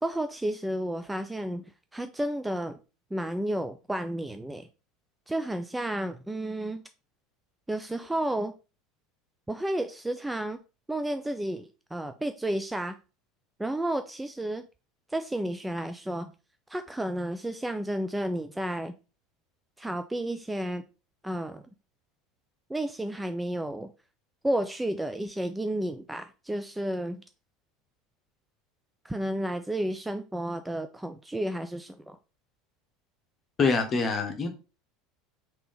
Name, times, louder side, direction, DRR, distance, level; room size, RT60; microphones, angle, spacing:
voice 1, 0.0-1.7 1.9-2.8 3.1-4.7 5.3-6.8 7.7-8.5 9.5-10.6 10.9-13.0 13.6-14.6 15.1-16.3 16.7-18.9 19.8-20.8 21.2-21.6 22.7-23.9 24.4-27.2 29.0-32.2, right 1 dB, 10° right, 0.3 m, -31 dB
voice 2, 33.6-34.5, left 4 dB, 30° left, 0.9 m, -25 dB
3.7 x 2.8 x 3.7 m
figure-of-eight pair, 70°, 0 cm